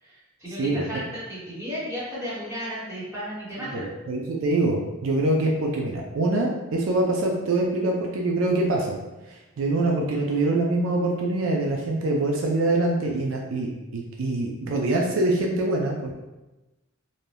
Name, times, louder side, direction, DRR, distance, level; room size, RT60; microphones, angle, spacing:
voice 1, 0.0-3.9, equal, 10° right, -10 dB, 1.0 m, -34 dB
voice 2, 0.6-1.0 3.6-9.0 9.3-16.1, right 2 dB, 65° right, 0 dB, 0.4 m, -24 dB
2.6 x 2.2 x 3.2 m, 1.1 s
head